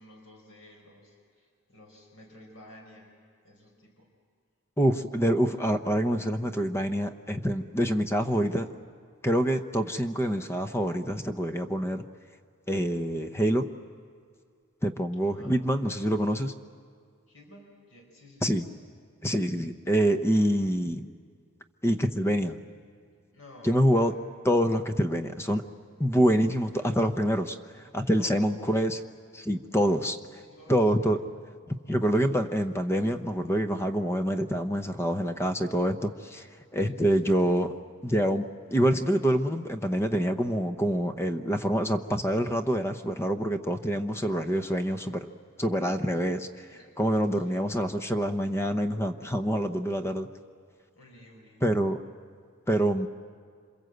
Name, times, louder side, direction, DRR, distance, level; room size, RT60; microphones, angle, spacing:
voice 1, 0.0-3.1 3.4-4.1 15.2-15.6 17.3-18.6 23.3-24.2 28.1-28.6 30.3-31.5 36.8-37.3 46.6-48.0 50.9-51.6, left 1 dB, 65° left, 1 dB, 4.7 m, -52 dB
voice 2, 4.8-8.7 9.2-12.0 12.7-13.7 14.8-16.5 18.4-18.6 19.2-21.1 21.8-22.6 23.6-24.1 24.5-25.6 26.0-27.6 27.9-29.0 29.3-30.2 30.7-31.2 31.9-36.5 36.7-37.7 38.0-45.3 45.6-46.7 47.0-50.3 51.6-52.0 52.7-53.1, equal, 10° left, 8 dB, 0.8 m, -26 dB
28.0 x 26.0 x 8.0 m, 2.1 s
head